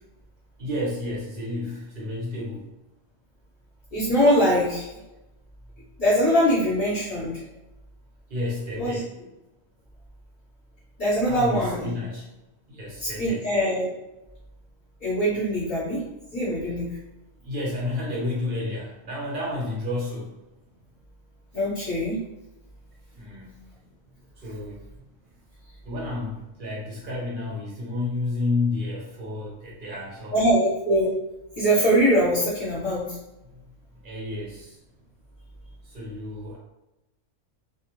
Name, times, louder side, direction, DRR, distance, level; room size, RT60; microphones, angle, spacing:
voice 1, 0.6-2.7 8.3-9.1 11.2-12.3 12.7-13.5 17.4-20.4 23.1-23.7 24.4-24.8 25.8-30.6 33.5-33.6 34.0-34.8 35.8-36.6, left 2 dB, 50° right, -3 dB, 0.7 m, -31 dB
voice 2, 3.9-4.9 6.0-7.4 8.7-9.0 11.0-11.9 13.0-13.9 15.0-16.0 16.3-16.9 21.5-22.2 30.3-31.1 31.6-33.1, equal, 35° left, -8 dB, 0.7 m, -22 dB
2.4 x 2.1 x 2.9 m, 0.95 s
omnidirectional pair, 1.4 m